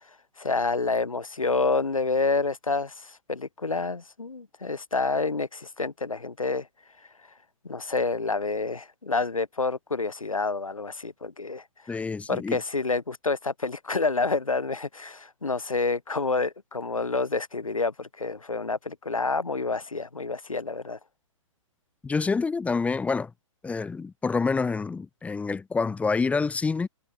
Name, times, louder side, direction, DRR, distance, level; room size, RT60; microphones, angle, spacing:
voice 1, 0.4-6.7 7.6-11.6 11.9-21.0, left 3 dB, 90° left, 3.8 m, -28 dB
voice 2, 11.9-12.6 22.0-23.3 23.6-26.9, left 4 dB, 10° left, 1.0 m, -27 dB
figure-of-eight pair, 125°, 17 cm